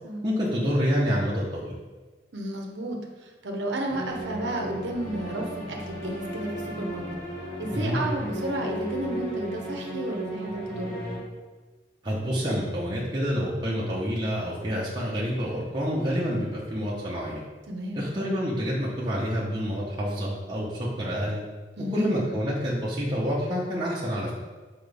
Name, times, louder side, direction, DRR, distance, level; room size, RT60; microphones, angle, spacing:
voice 1, 0.2-1.7 7.7-8.0 12.0-17.4 17.9-21.4 21.9-24.3, equal, 25° right, -7 dB, 0.9 m, -28 dB
voice 2, 2.3-3.0 3.4-7.0 7.6-11.0 17.7-18.1 21.8-22.1, right 1 dB, 80° right, 1 dB, 0.9 m, -32 dB
sound 1, 3.9-11.2, equal, 50° left, 1.6 m, -35 dB
6.0 x 4.6 x 3.5 m, 1.3 s
head